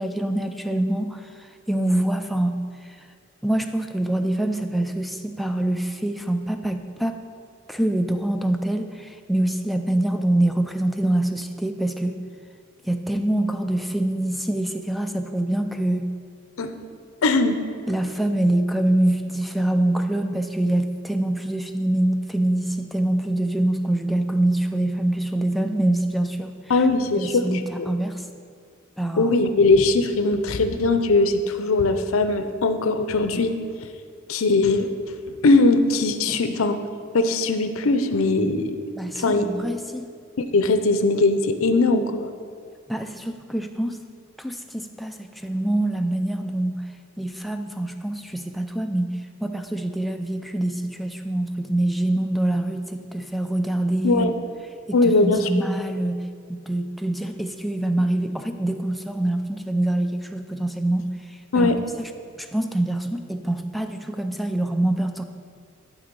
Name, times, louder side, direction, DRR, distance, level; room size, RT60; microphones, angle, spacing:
voice 1, 0.0-3.0 3.4-7.2 7.7-12.2 12.8-16.1 17.9-26.6 27.1-28.3 29.0-29.4 36.3-36.4 39.0-40.1 42.9-44.0 44.4-46.8 47.2-54.4 54.9-56.2 56.5-61.7 62.4-65.2, right 1 dB, ahead, 5 dB, 0.3 m, -25 dB
voice 2, 17.2-17.6 26.7-27.4 27.8-27.9 29.2-33.5 34.3-34.9 35.4-36.8 37.1-38.8 39.2-39.5 40.5-42.3 54.0-54.3 54.9-55.5 61.5-61.8, left 3 dB, 85° left, 8 dB, 0.6 m, -20 dB
11.5 x 3.9 x 5.3 m, 2.1 s
head